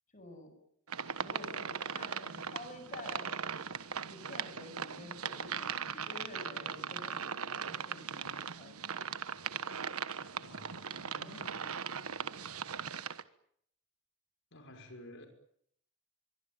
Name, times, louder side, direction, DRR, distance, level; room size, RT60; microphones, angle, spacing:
voice 1, 0.1-0.5 1.2-3.3 4.0-9.0 11.2-11.7, left 2 dB, 35° left, 7.6 m, -50 dB
sound 1, 0.9-13.2, right 7 dB, 85° right, 1.4 m, -39 dB
voice 2, 10.2-11.7 14.5-15.3, left 1 dB, 60° left, 5.8 m, -52 dB
24.5 x 23.5 x 9.1 m
head